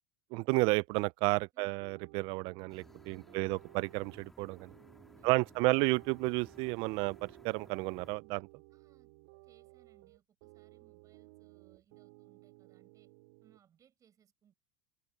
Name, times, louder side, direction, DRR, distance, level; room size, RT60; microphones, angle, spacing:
voice 1, 0.3-4.7 5.2-8.5, right 25 dB, 60° right, 0.5 m, -32 dB
voice 2, 1.5-1.8 3.0-3.9 5.1-5.9 8.7-9.1 9.4-13.1 13.4-14.5, right 9 dB, 35° right, 7.6 m, -68 dB
sound 1, 1.8-13.6, right 26 dB, 75° right, 3.0 m, -57 dB
sound 2, 2.7-8.2, left 1 dB, 5° left, 2.0 m, -59 dB
open air
supercardioid pair, 115°, 10 cm